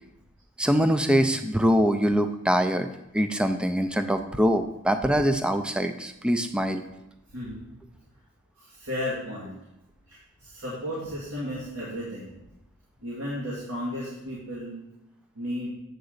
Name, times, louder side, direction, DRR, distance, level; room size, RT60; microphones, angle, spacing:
voice 1, 0.6-2.9 3.1-6.8, equal, 5° right, 8 dB, 0.3 m, -23 dB
voice 2, 7.3-7.6 8.6-9.6 10.1-12.4 13.0-14.8 15.3-15.7, left 1 dB, 85° right, -6 dB, 2.1 m, -34 dB
8.0 x 3.9 x 6.5 m, 0.86 s
head